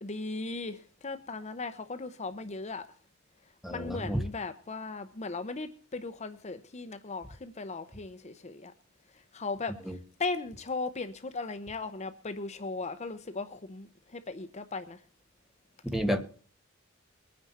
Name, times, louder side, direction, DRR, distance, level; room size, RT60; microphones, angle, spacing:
voice 1, 0.0-2.9 3.7-8.7 9.3-15.0, left 3 dB, 35° left, 0.8 m, -37 dB
voice 2, 3.6-4.2 9.9-10.0 15.9-16.2, equal, ahead, 1.6 m, -30 dB
23.0 x 9.5 x 4.2 m
head